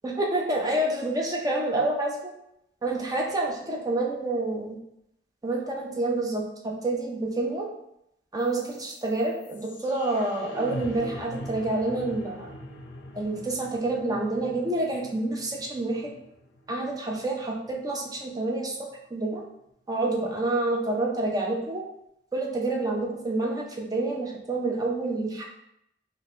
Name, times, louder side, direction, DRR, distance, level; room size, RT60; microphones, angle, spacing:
voice 1, 0.0-2.3 2.8-4.8 5.4-7.7 8.3-12.5 13.1-16.1 16.7-18.8 19.1-19.4 19.9-21.8 22.3-25.5, right 2 dB, 20° right, -1 dB, 0.5 m, -28 dB
sound 1, 8.4-18.4, left 1 dB, 75° left, 0.5 m, -43 dB
4.1 x 2.2 x 3.1 m, 0.81 s
head